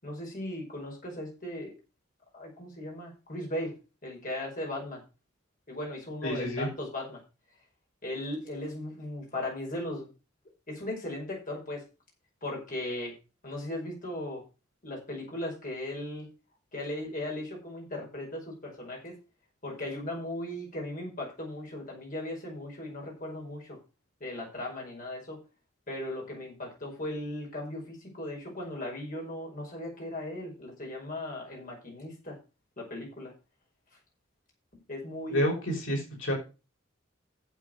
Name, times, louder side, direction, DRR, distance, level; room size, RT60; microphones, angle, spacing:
voice 1, 0.0-1.7 2.3-3.8 4.0-5.0 5.7-7.2 8.0-10.1 10.7-11.8 12.4-13.1 13.4-14.4 14.8-16.3 16.7-19.2 19.6-23.8 24.2-25.4 25.9-32.4 32.8-33.3 34.9-35.6, left 1 dB, 45° left, -1 dB, 5.4 m, -37 dB
voice 2, 6.2-6.7 35.3-36.3, equal, 80° left, -1 dB, 5.6 m, -29 dB
8.9 x 7.7 x 6.5 m, 0.31 s
head